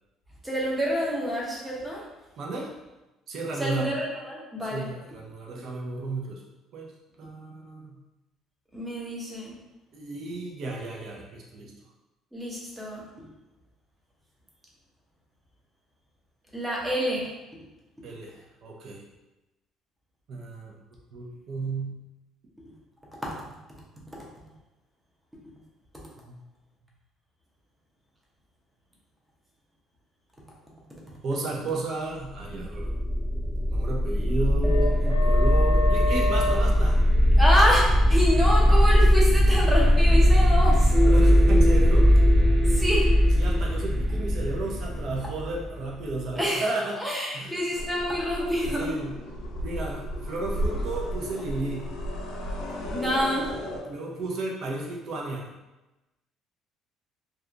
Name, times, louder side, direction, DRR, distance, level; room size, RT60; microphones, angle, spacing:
voice 1, 0.4-2.0 3.6-4.9 5.6-5.7 8.7-9.5 12.3-13.0 16.5-17.3 37.4-40.9 42.7-43.1 46.4-46.7 47.0-48.9 52.8-53.5, equal, 10° right, -4 dB, 0.7 m, -27 dB
voice 2, 2.4-2.7 3.3-3.9 4.7-6.4 6.7-6.9 7.2-8.0 9.9-11.7 18.0-19.0 20.3-20.7 21.1-22.0 26.3-26.4 31.2-32.9 33.7-37.0 40.9-42.1 43.3-47.0 47.3-47.6 48.5-49.2 49.6-51.9 53.9-55.5, right 2 dB, 55° right, -1 dB, 0.6 m, -33 dB
sound 1, 32.6-46.3, equal, 30° right, 1.3 m, -20 dB
sound 2, 47.8-53.8, equal, 85° left, 0.5 m, -34 dB
2.7 x 2.3 x 2.5 m, 1.0 s
cardioid pair, 115°, 0 cm